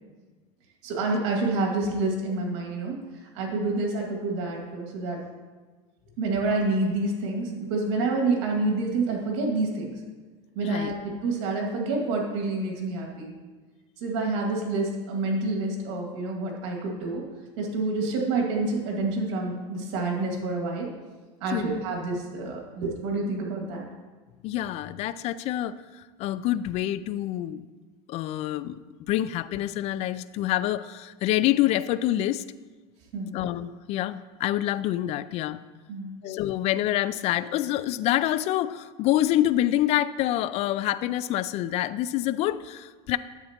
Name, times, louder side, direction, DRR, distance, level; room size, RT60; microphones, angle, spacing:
voice 1, 0.8-3.0 3.3-5.2 6.2-9.9 10.6-13.3 14.0-17.2 17.6-20.9 21.4-23.9 33.1-33.3 35.9-36.1, right 3 dB, 75° right, 0 dB, 2.2 m, -28 dB
voice 2, 10.6-10.9 21.5-21.8 24.4-27.6 28.1-32.4 33.3-35.6 36.2-43.2, left 13 dB, 45° left, 15 dB, 0.4 m, -27 dB
10.5 x 8.1 x 2.9 m, 1.4 s
supercardioid pair, 125°, 15 cm